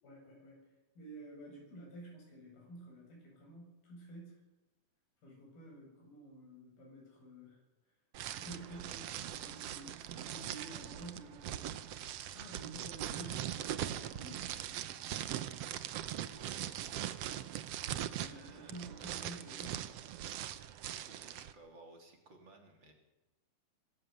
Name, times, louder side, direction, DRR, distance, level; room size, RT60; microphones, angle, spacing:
voice 1, 0.0-0.7 1.0-4.4 5.2-7.6 8.4-11.7 12.2-14.4 18.2-19.8, right 2 dB, 80° left, -1 dB, 10.0 m, -51 dB
sound 1, 8.1-21.5, right 11 dB, 80° right, 1.4 m, -41 dB
voice 2, 8.5-9.0 16.2-17.4 18.2-19.6 20.8-22.9, right 2 dB, 35° right, 3 dB, 3.7 m, -58 dB
25.0 x 13.5 x 8.2 m, 1.0 s
omnidirectional pair, 4.1 m